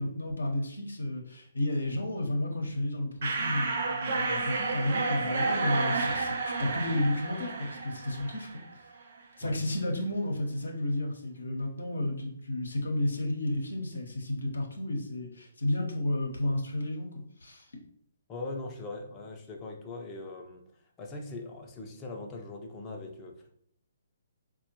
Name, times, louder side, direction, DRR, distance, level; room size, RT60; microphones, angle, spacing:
voice 1, 0.0-8.6 9.4-17.1 17.4-17.7, left 1 dB, 75° left, 1 dB, 0.7 m, -32 dB
sound 1, 3.2-8.7, right 3 dB, 50° right, 0.6 m, -31 dB
voice 2, 18.3-20.6 21.0-23.5, left 2 dB, 20° left, 1 dB, 0.6 m, -41 dB
4.1 x 2.2 x 2.9 m, 0.69 s
figure-of-eight pair, 130°, 0 cm